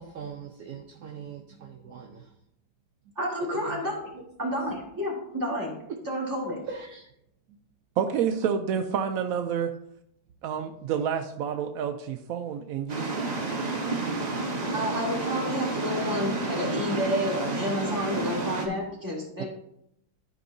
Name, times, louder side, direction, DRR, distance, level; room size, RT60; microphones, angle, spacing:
voice 1, 0.0-2.3 3.5-3.8 4.4-4.5 6.7-7.1, right 5 dB, 65° right, 2 dB, 1.1 m, -41 dB
voice 2, 3.2-4.0 4.4-5.7 6.1-6.6 14.7-19.4, equal, 10° right, -5 dB, 2.3 m, -30 dB
voice 3, 8.0-9.7 10.4-13.5 19.4-19.5, right 7 dB, 80° right, 7 dB, 0.7 m, -29 dB
sound 1, 12.9-18.7, right 3 dB, 35° right, 0.7 m, -30 dB
13.0 x 5.3 x 2.7 m, 0.78 s
omnidirectional pair, 2.0 m